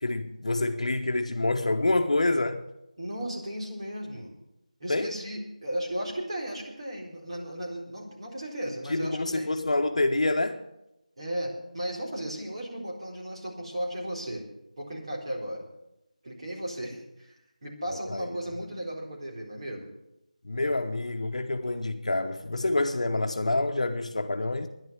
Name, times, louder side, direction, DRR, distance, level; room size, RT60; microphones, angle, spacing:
voice 1, 0.0-2.6 4.9-5.1 8.9-10.6 18.1-18.3 20.4-24.7, left 2 dB, 60° left, 1.0 m, -27 dB
voice 2, 3.0-4.3 4.8-9.5 11.2-14.4 14.8-15.7 16.2-17.4 17.6-19.9, equal, 45° right, 3.9 m, -35 dB
11.0 x 10.5 x 8.0 m
figure-of-eight pair, 175°, 4 cm